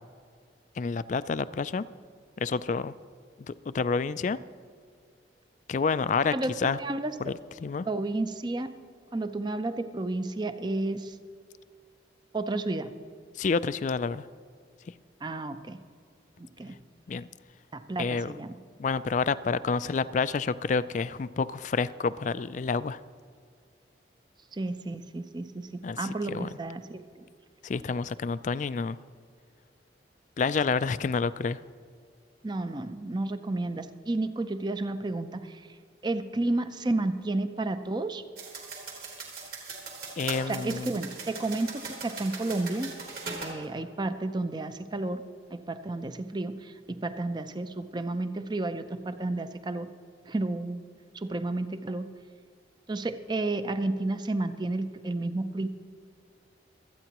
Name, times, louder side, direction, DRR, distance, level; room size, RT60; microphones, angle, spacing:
voice 1, 0.8-1.9 2.4-2.9 3.4-4.4 5.7-6.8 7.2-7.3 7.6-7.9 13.3-14.3 14.9-15.0 17.1-17.3 18.0-18.3 18.8-23.0 25.8-26.5 27.6-29.0 30.4-31.6 40.2-40.9, left 4 dB, 40° left, 16 dB, 0.3 m, -29 dB
voice 2, 6.3-7.1 7.8-8.7 9.1-11.2 12.3-12.9 15.2-15.8 16.4-16.8 17.7-18.6 24.5-27.3 32.4-35.8 36.0-38.2 40.5-43.0 43.4-45.2 45.5-49.9 50.3-50.8 51.1-52.1 52.9-55.7, right 2 dB, 25° right, 10 dB, 0.5 m, -31 dB
sound 1, 38.4-43.5, right 4 dB, 55° right, 2.9 m, -40 dB
25.0 x 9.1 x 3.0 m, 2.2 s
head